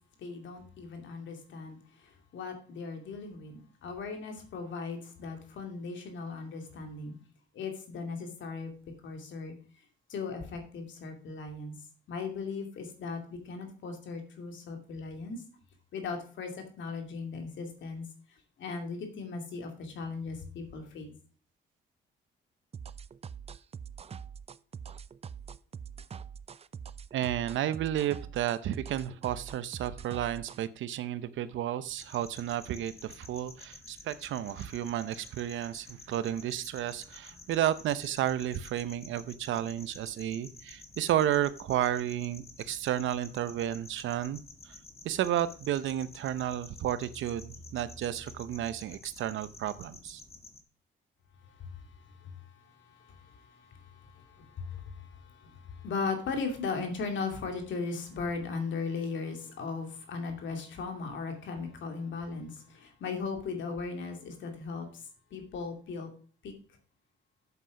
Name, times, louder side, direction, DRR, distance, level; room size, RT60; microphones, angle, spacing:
voice 1, 0.2-7.2 7.5-8.7 9.0-9.5 10.1-11.7 12.1-15.4 15.9-21.1 51.4-66.1 66.4-66.5, left 4 dB, 70° left, 4 dB, 2.5 m, -38 dB
sound 1, 22.7-30.7, right 7 dB, 30° right, 0.5 m, -44 dB
voice 2, 27.1-44.4 44.7-44.8 45.0-50.2, right 11 dB, 75° right, 14 dB, 0.7 m, -32 dB
sound 2, 31.9-50.6, left 2 dB, 30° left, 1.8 m, -51 dB
8.1 x 7.7 x 4.9 m, 0.42 s
cardioid pair, 90°, 20 cm